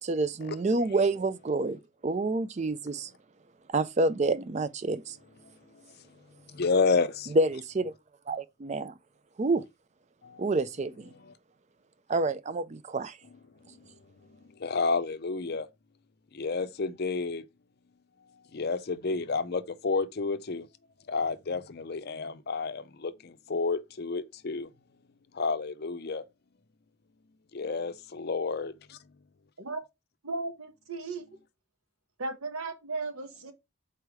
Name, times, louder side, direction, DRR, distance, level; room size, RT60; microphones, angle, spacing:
voice 1, 0.0-3.1 3.7-5.2 7.3-7.9 8.3-8.9 9.4-9.6 10.4-11.1 12.1-13.2, right 2 dB, 30° right, 0.4 m, -28 dB
voice 2, 6.5-7.4 10.2-10.4 14.6-15.7 16.3-17.4 18.5-20.7 21.1-24.7 25.3-26.2 27.5-29.0, left 4 dB, 45° left, 0.5 m, -30 dB
voice 3, 30.2-31.4 32.2-33.5, right 3 dB, 85° right, 1.2 m, -36 dB
4.9 x 4.5 x 4.7 m
head